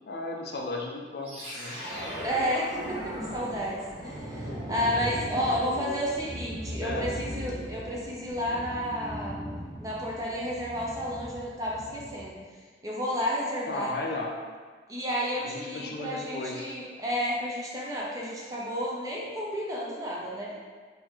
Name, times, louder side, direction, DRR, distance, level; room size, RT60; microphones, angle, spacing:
voice 1, 0.1-1.8 2.0-2.2 5.3-6.0 6.8-7.1 13.7-14.3 15.4-16.7, left 2 dB, 60° left, 0 dB, 0.4 m, -35 dB
sound 1, 1.2-12.3, equal, 35° right, 0.9 m, -38 dB
voice 2, 2.2-9.4 9.8-12.4 12.8-14.0 14.9-20.6, equal, 20° right, -5 dB, 0.6 m, -31 dB
3.7 x 2.7 x 3.1 m, 1.5 s
head